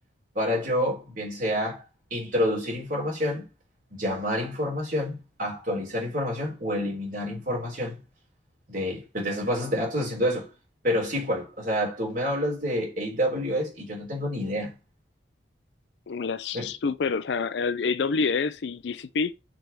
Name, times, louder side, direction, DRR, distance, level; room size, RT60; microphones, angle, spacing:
voice 1, 0.4-1.8 2.1-3.5 3.9-8.0 8.7-10.5 10.8-14.8 16.5-16.7, equal, 45° right, 3.4 m, -28 dB
voice 2, 16.1-19.3, left 4 dB, 60° left, 0.4 m, -27 dB
6.1 x 3.5 x 5.3 m
head